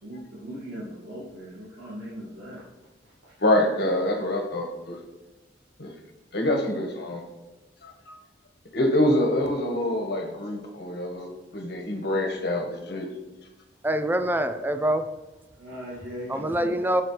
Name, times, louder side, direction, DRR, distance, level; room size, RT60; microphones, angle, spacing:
voice 1, 0.0-2.7 3.0-3.3 8.9-9.0 15.6-16.9, equal, 80° right, -8 dB, 2.2 m, -39 dB
voice 2, 3.4-5.0 5.8-5.9 6.3-7.2 7.8-8.2 8.7-13.1, left 1 dB, 60° left, 3 dB, 1.4 m, -26 dB
voice 3, 13.8-15.1 16.3-17.0, right 1 dB, 10° right, 9 dB, 0.4 m, -25 dB
7.6 x 7.4 x 3.3 m, 1.1 s
head